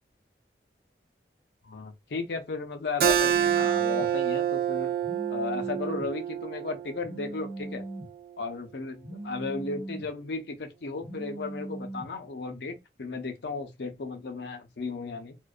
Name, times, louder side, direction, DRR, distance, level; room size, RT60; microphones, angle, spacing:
voice 1, 1.7-4.9 5.3-7.8 8.4-15.4, left 4 dB, 75° left, 0.5 m, -35 dB
Keyboard (musical), 3.0-8.2, right 9 dB, 55° right, 0.4 m, -28 dB
Telephone, 3.3-4.1 5.0-6.1 7.0-8.1 9.0-10.1 11.0-12.1, right 2 dB, 5° right, 0.9 m, -39 dB
2.5 x 2.1 x 2.4 m
head